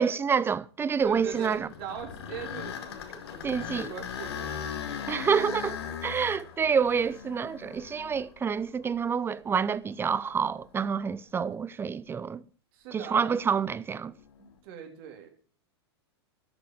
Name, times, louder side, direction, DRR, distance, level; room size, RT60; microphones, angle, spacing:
voice 1, 0.0-1.7 3.4-3.9 5.1-12.4 12.9-14.1, right 6 dB, 15° right, 0.6 m, -28 dB
sound 1, 1.0-9.1 9.7-9.8 10.5-10.6 14.2-14.5, left 8 dB, 70° left, 1.9 m, -39 dB
voice 2, 1.0-5.0 12.7-13.3 14.4-15.3, right 8 dB, 55° right, 3.2 m, -41 dB
12.5 x 6.9 x 7.3 m
hypercardioid pair, 100°, 14 cm